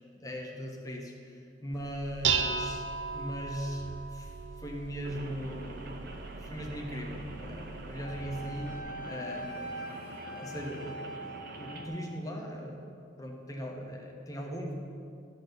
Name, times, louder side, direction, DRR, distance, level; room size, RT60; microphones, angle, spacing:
voice 1, 0.2-2.9 3.1-6.1 6.4-8.7 9.0-9.8 10.3-11.0 11.6-12.8 13.2-14.7, equal, 20° left, 0 dB, 1.2 m, -39 dB
Dishes pots and pans, 1.7-8.8, right 5 dB, 80° right, 0.8 m, -36 dB
Rain, 5.0-11.9, right 2 dB, 55° right, 1.0 m, -46 dB
Wind instrument woodwind instrument, 8.0-12.3, right 1 dB, 45° left, 0.9 m, -43 dB
12.5 x 4.5 x 8.2 m, 2.5 s
head